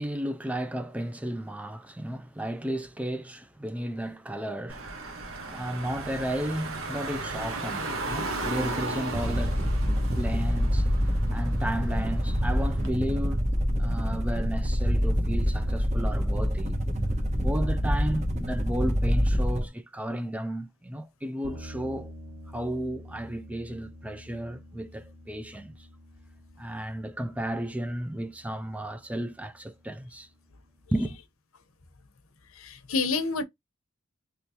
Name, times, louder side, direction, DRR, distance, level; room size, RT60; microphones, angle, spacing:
voice 1, 0.0-9.7 10.2-10.9 11.3-13.4 13.8-16.8 17.4-22.1 22.5-25.9 26.6-30.3 30.9-31.2, right 1 dB, 5° right, 0.4 m, -33 dB
Car / Engine, 4.7-12.9, right 2 dB, 75° right, 1.1 m, -36 dB
sound 1, 9.1-19.7, equal, 35° right, 0.9 m, -26 dB
sound 2, 21.4-30.9, equal, 90° right, 1.9 m, -48 dB
voice 2, 32.5-33.4, left 4 dB, 85° left, 0.9 m, -28 dB
3.6 x 3.1 x 2.8 m
head